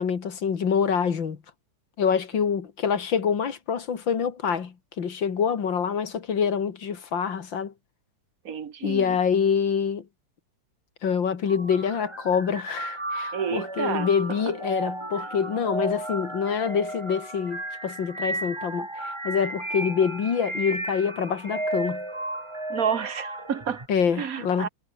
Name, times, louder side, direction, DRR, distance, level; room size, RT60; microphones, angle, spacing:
voice 1, 0.0-1.4 2.0-7.7 8.8-10.0 11.0-22.0 23.9-24.7, left 6 dB, 75° left, 2.8 m, -26 dB
voice 2, 8.5-9.2 13.3-14.1 22.7-23.8 24.2-24.7, right 7 dB, 50° right, 1.7 m, -29 dB
sound 1, 11.5-23.9, right 1 dB, 15° right, 2.7 m, -34 dB
omnidirectional pair, 2.1 m